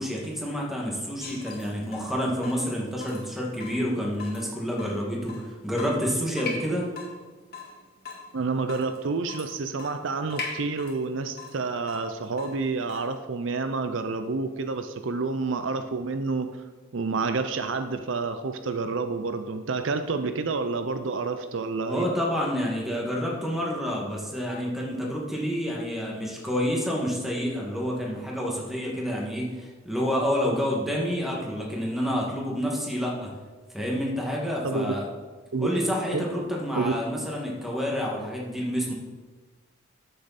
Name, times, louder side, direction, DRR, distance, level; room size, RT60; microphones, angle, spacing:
voice 1, 0.0-6.8 21.8-33.3 33.7-35.1 35.6-38.9, equal, ahead, -3 dB, 1.9 m, -28 dB
Water tap faucet / Drip, 1.2-13.2, left 4 dB, 50° left, 1.8 m, -42 dB
voice 2, 8.3-16.5 16.9-22.1 34.6-34.9 35.5-35.7 36.1-36.2 36.7-36.9, right 4 dB, 65° right, 8 dB, 0.6 m, -29 dB
13.0 x 6.8 x 4.2 m, 1.3 s
head